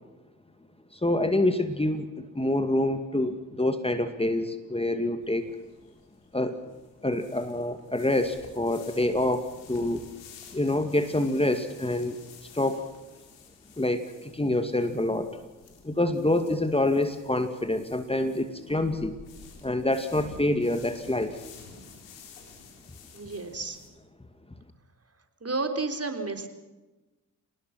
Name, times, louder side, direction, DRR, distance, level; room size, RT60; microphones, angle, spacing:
voice 1, 0.9-5.5 6.3-6.6 7.0-10.0 10.5-12.2 12.5-12.8 13.8-15.4 15.8-19.2 19.6-21.4, left 1 dB, 15° left, 8 dB, 2.3 m, -26 dB
sound 1, 5.2-23.9, left 5 dB, 80° left, 4.1 m, -51 dB
voice 2, 23.1-23.8 25.4-26.5, right 3 dB, 35° right, 7 dB, 4.0 m, -31 dB
27.5 x 19.5 x 6.1 m, 1.1 s
hypercardioid pair, 40°, 44 cm